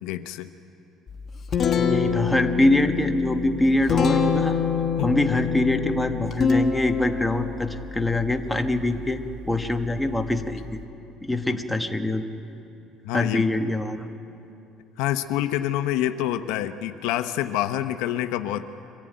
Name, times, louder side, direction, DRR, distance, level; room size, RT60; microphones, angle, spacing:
voice 1, 0.0-0.5 5.0-5.1 11.5-11.6 13.0-13.5 15.0-18.6, left 13 dB, 85° left, 9 dB, 0.9 m, -27 dB
Guitar, 1.1-10.8, left 6 dB, 35° left, 1.6 m, -27 dB
voice 2, 1.8-4.6 5.0-10.8 11.2-12.2 13.1-14.1, left 2 dB, 5° left, 5 dB, 1.2 m, -24 dB
24.0 x 15.0 x 9.2 m, 2.9 s
cardioid pair, 130°, 0 cm